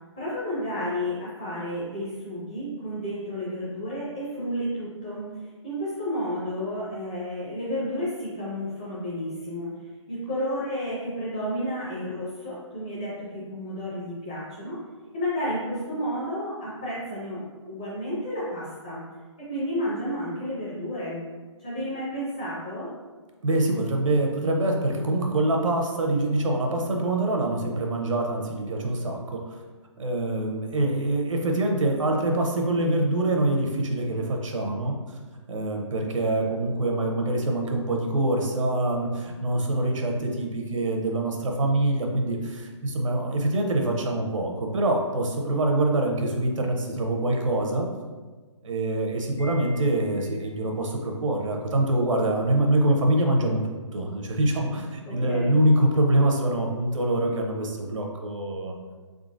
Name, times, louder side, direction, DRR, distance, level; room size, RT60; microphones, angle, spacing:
voice 1, 0.2-9.7 10.1-14.8 15.1-19.0 19.5-21.2 21.6-22.9 55.0-55.5, equal, 15° left, -9 dB, 0.5 m, -31 dB
voice 2, 23.4-29.6 30.0-35.0 35.5-47.9 48.6-58.7, right 1 dB, 80° right, 1 dB, 0.8 m, -25 dB
Wind chime, 49.4-50.8, right 1 dB, 70° left, 0.7 m, -47 dB
3.7 x 3.4 x 2.5 m, 1.4 s
hypercardioid pair, 180°, 16 cm